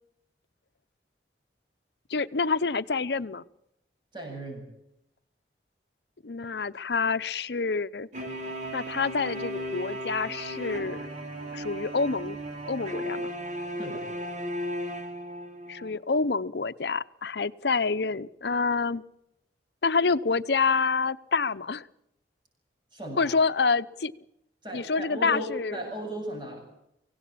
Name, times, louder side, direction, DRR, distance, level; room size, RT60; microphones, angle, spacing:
voice 1, 2.1-3.4 6.2-8.1 8.7-11.0 11.5-12.4 12.6-13.3 15.7-19.0 19.8-21.9 23.2-24.1 24.7-25.8, left 4 dB, 70° left, 13 dB, 0.8 m, -27 dB
voice 2, 4.1-4.6 13.8-14.1 22.9-23.4 24.6-26.6, equal, 25° right, 1 dB, 7.8 m, -36 dB
sound 1, 8.1-15.9, equal, 45° right, 4.9 m, -35 dB
24.5 x 17.0 x 8.6 m, 0.81 s
head